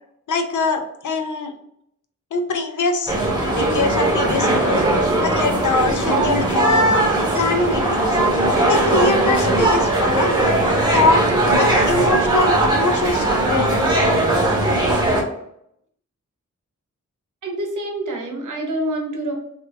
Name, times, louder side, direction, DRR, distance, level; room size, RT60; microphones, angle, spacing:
voice 1, 0.3-1.5 2.3-3.1 3.5-6.9 7.3-8.2 8.7-10.3 10.9-13.8, left 3 dB, 75° left, 6 dB, 0.5 m, -23 dB
sound 1, 3.1-15.2, right 1 dB, 15° right, 0.9 m, -19 dB
voice 2, 17.4-19.3, right 1 dB, 75° right, 2 dB, 0.8 m, -26 dB
2.5 x 2.2 x 3.3 m, 0.73 s
wide cardioid pair, 60°, 31 cm